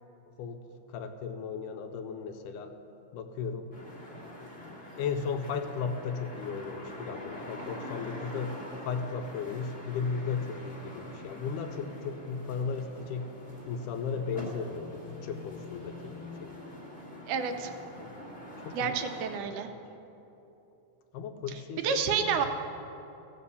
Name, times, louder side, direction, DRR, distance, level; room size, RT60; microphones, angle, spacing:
voice 1, 0.3-0.6 0.9-2.7 3.1-3.7 4.2-4.5 5.0-8.6 8.8-13.3 13.7-16.5 18.0-18.1 18.6-19.0 21.1-22.5, left 5 dB, 80° left, 6 dB, 2.1 m, -35 dB
sound 1, 3.7-19.4, left 1 dB, 5° left, 0.8 m, -45 dB
voice 2, 17.3-17.7 18.7-19.7 21.8-22.5, right 6 dB, 80° right, 6 dB, 2.0 m, -29 dB
15.5 x 5.2 x 6.8 m, 2.9 s
omnidirectional pair, 3.8 m